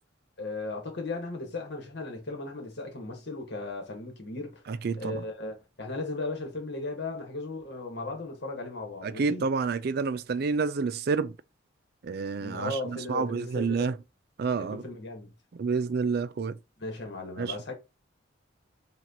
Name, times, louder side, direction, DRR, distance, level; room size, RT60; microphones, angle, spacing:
voice 1, 0.4-4.6 5.0-9.4 12.4-13.9 14.6-15.3 16.8-17.7, left 2 dB, 60° left, 1.4 m, -36 dB
voice 2, 4.7-5.2 9.0-11.3 12.0-13.9 14.4-14.8 15.5-16.6 17.4-17.5, right 5 dB, 55° right, 0.4 m, -29 dB
5.8 x 2.5 x 2.9 m
head